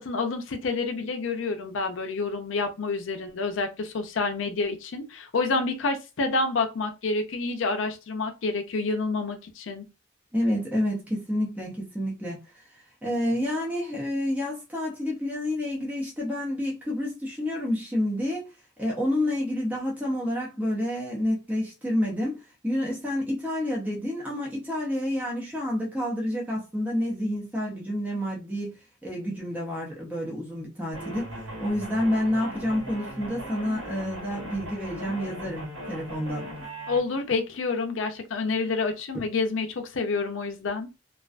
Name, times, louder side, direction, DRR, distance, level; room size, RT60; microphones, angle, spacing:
voice 1, 0.0-9.8 36.9-40.9, left 3 dB, 75° left, 0.5 m, -28 dB
voice 2, 10.3-12.4 13.0-18.5 18.8-22.4 22.6-28.7 29.0-36.5, left 1 dB, 10° right, 0.6 m, -29 dB
sound 1, 30.9-37.0, equal, 85° right, 1.1 m, -38 dB
2.4 x 2.2 x 2.4 m
head